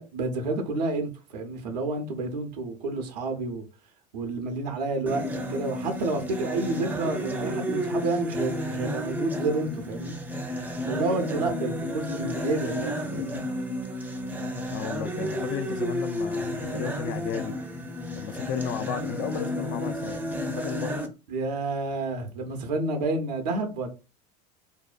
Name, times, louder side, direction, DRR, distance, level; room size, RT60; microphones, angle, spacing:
voice 1, 0.0-3.6 4.1-10.2 10.8-13.4 21.3-23.9, right 3 dB, 80° right, 0.6 m, -30 dB
sound 1, 5.1-21.1, left 1 dB, 10° right, 0.5 m, -32 dB
voice 2, 14.7-17.6 18.1-20.3 20.6-21.0, left 8 dB, 55° left, 0.4 m, -34 dB
2.6 x 2.1 x 2.4 m
hypercardioid pair, 90°, 21 cm